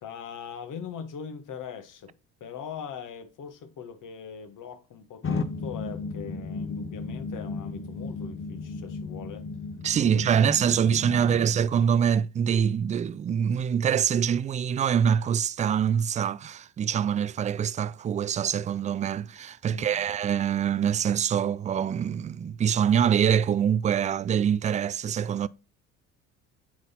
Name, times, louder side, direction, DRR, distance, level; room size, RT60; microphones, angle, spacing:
voice 1, 0.0-2.1 2.4-9.5 10.0-10.3 10.8-11.5 19.7-20.1, left 7 dB, 50° left, 1.4 m, -41 dB
sound 1, 5.2-11.5, left 4 dB, 35° left, 1.1 m, -35 dB
voice 2, 9.8-25.5, right 8 dB, 20° right, 0.3 m, -24 dB
9.4 x 4.0 x 4.3 m
hypercardioid pair, 60°, 39 cm